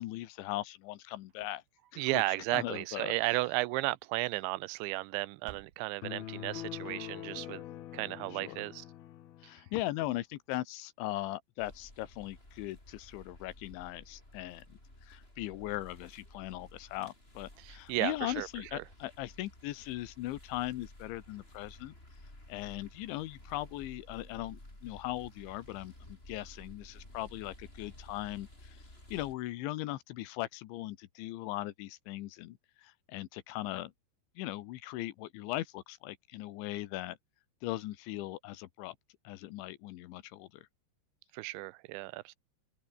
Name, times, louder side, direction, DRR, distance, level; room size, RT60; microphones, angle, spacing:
voice 1, 0.0-1.6 1.9-3.1 8.3-8.6 9.4-21.9 22.5-28.8 29.1-33.9 34.4-37.2 37.6-39.0 39.3-40.6, left 16 dB, 85° left, 3.5 m, -39 dB
sound 1, 1.2-2.4 2.9-3.6 4.5-5.0 5.4-6.3, right 12 dB, 70° right, 3.6 m, -57 dB
voice 2, 2.0-7.6 7.9-8.9 17.6-18.8 41.3-42.4, right 21 dB, 85° right, 3.0 m, -34 dB
sound 2, 6.0-9.6, left 13 dB, 65° left, 3.0 m, -44 dB
sound 3, 11.6-29.3, left 1 dB, 10° left, 7.5 m, -54 dB
open air
omnidirectional pair, 5.2 m